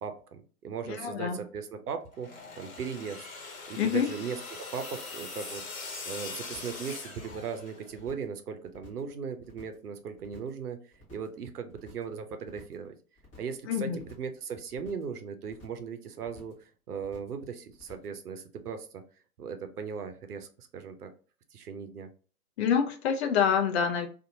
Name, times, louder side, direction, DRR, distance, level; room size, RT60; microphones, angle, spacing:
voice 1, 0.0-2.3 2.5-3.3 3.7-12.9 13.4-13.9 14.2-19.0 19.4-21.1 21.5-22.1, right 6 dB, 80° right, 7 dB, 0.7 m, -38 dB
voice 2, 0.9-1.4 3.8-4.1 13.7-14.0 22.6-24.1, left 7 dB, 45° left, 6 dB, 0.6 m, -27 dB
sound 1, 2.1-8.0, left 3 dB, 60° left, 1.1 m, -42 dB
sound 2, 6.5-6.8 7.1-7.6 7.9-8.3 8.6-9.1 9.4-9.9 10.2-10.6 10.9-11.4 11.7-12.1 12.4-12.9 13.2-13.6 13.9-14.4 14.7-15.1 15.4-15.9 16.2-16.6 16.9-17.4 17.7-18.2, left 4 dB, 15° left, 1.1 m, -54 dB
2.7 x 2.5 x 2.6 m, 0.39 s
figure-of-eight pair, 120°, 45 cm